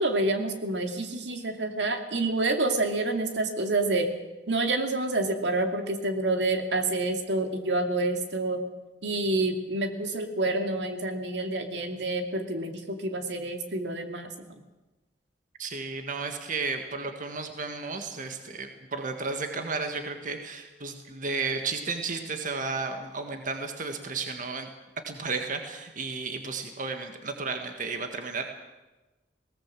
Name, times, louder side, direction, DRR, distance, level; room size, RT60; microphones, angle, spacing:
voice 1, 0.0-4.1 4.5-8.6 9.0-14.5, right 2 dB, 80° right, 5 dB, 2.4 m, -28 dB
voice 2, 15.6-24.7 25.1-28.5, right 4 dB, 50° right, 5 dB, 1.7 m, -33 dB
20.5 x 18.5 x 7.7 m, 1.1 s
head